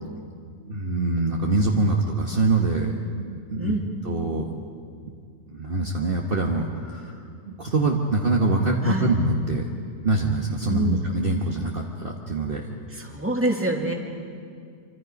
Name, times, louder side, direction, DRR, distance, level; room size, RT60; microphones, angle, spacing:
voice 1, 0.7-2.9 3.3-3.7 4.0-4.4 5.5-7.1 7.6-9.6 10.0-12.8, right 2 dB, 40° right, 0 dB, 1.5 m, -24 dB
voice 2, 10.7-11.0 12.9-13.9, right 1 dB, 10° right, 0 dB, 2.4 m, -26 dB
27.5 x 25.0 x 5.3 m, 2.3 s
omnidirectional pair, 1.6 m